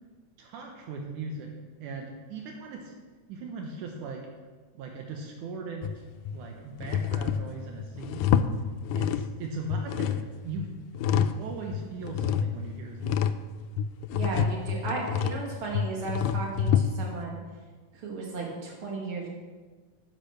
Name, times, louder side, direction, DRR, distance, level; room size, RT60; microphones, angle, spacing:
voice 1, 0.4-1.5 1.8-2.9 3.3-4.3 4.7-6.0 6.3-8.4 8.9-10.7 11.1-13.3, right 3 dB, 80° right, 1 dB, 2.5 m, -39 dB
sound 1, 5.8-6.4 6.8-9.4 9.7-11.4 11.7-17.3, left 8 dB, 85° left, 2.0 m, -28 dB
voice 2, 14.1-17.4 17.9-19.3, right 3 dB, 45° right, -2 dB, 3.1 m, -35 dB
9.8 x 8.9 x 6.6 m, 1.4 s
omnidirectional pair, 3.5 m